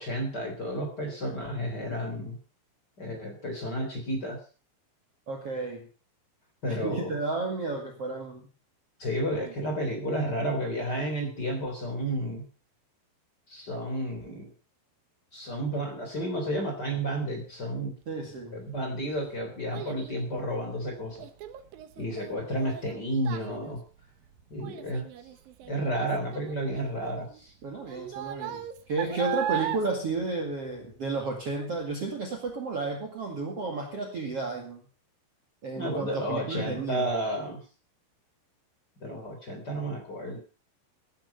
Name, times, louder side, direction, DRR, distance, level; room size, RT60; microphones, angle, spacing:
voice 1, 0.0-2.4 3.0-4.4 6.6-7.2 9.0-12.4 13.5-14.5 15.3-17.9 18.5-21.2 22.0-23.8 24.5-25.1 25.7-27.5 35.8-37.6 39.0-40.4, right 1 dB, 25° left, 3 dB, 3.6 m, -31 dB
voice 2, 5.3-5.9 6.7-8.5 9.4-9.5 18.1-18.7 27.6-28.6 28.9-34.8 35.6-37.1, right 3 dB, 45° right, 2 dB, 2.5 m, -32 dB
Child speech kid speaking, 18.5-31.2 31.5-32.0 32.5-32.6, right 12 dB, 65° right, 2.6 m, -39 dB
17.0 x 10.5 x 5.6 m, 0.38 s
omnidirectional pair, 5.0 m